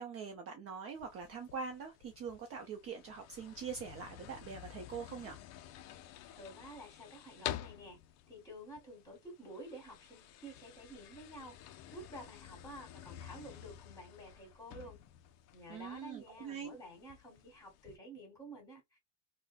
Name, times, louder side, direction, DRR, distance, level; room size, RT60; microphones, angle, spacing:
voice 1, 0.0-5.4 15.7-16.7, right 6 dB, 35° right, 0.6 m, -43 dB
sound 1, 0.9-18.0, left 11 dB, 45° left, 0.4 m, -50 dB
voice 2, 6.3-8.0 8.3-15.0 15.5-19.0, right 1 dB, 10° left, 2.0 m, -51 dB
3.6 x 2.2 x 2.4 m
cardioid pair, 145°, 39 cm